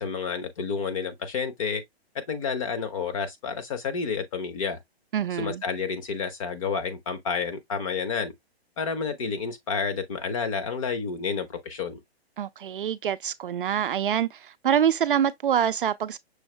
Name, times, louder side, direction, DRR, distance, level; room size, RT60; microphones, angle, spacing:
voice 1, 0.0-1.8 2.1-4.8 5.4-8.3 8.8-12.0, left 5 dB, 30° left, 0.9 m, -30 dB
voice 2, 5.1-5.6 12.4-16.2, right 9 dB, 55° right, 0.4 m, -25 dB
6.3 x 2.6 x 3.1 m
hypercardioid pair, 160°, 32 cm